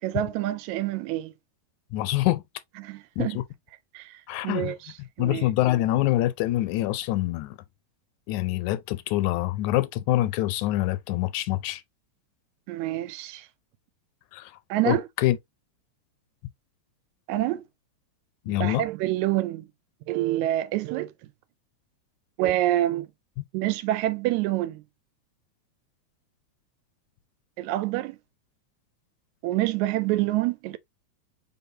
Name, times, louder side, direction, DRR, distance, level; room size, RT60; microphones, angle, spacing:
voice 1, 0.0-1.3 2.8-3.4 3.9-5.5 12.7-13.5 14.7-15.1 17.3-17.6 18.5-19.7 20.1-21.1 22.4-23.1 23.5-24.8 27.6-28.2 29.4-30.8, right 15 dB, 85° right, 1.9 m, -27 dB
voice 2, 1.9-2.4 3.2-3.3 4.3-4.7 5.2-7.6 8.3-11.8 14.3-14.5 14.9-15.0 15.2-15.4 18.5-18.8, left 15 dB, 90° left, 2.0 m, -25 dB
4.2 x 3.6 x 2.7 m
omnidirectional pair, 3.3 m